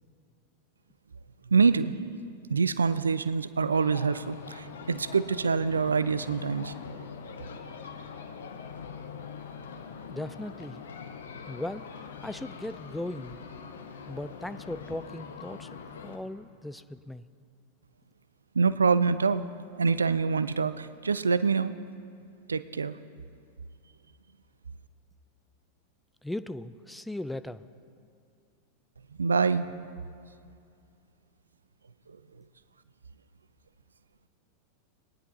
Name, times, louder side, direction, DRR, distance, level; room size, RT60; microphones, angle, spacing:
voice 1, 1.5-2.0 2.5-6.7 18.5-19.5 19.8-21.7 22.5-23.0 29.2-29.7 32.1-32.2, right 5 dB, 75° right, 15 dB, 0.3 m, -25 dB
sound 1, 3.7-16.2, left 6 dB, 65° left, 0.8 m, -43 dB
voice 2, 10.1-10.8 11.5-11.8 12.2-13.4 14.1-15.7 16.0-17.3 26.2-27.6, left 1 dB, 5° left, 12 dB, 0.3 m, -37 dB
20.5 x 10.0 x 2.6 m, 2.4 s
figure-of-eight pair, 90°, 0 cm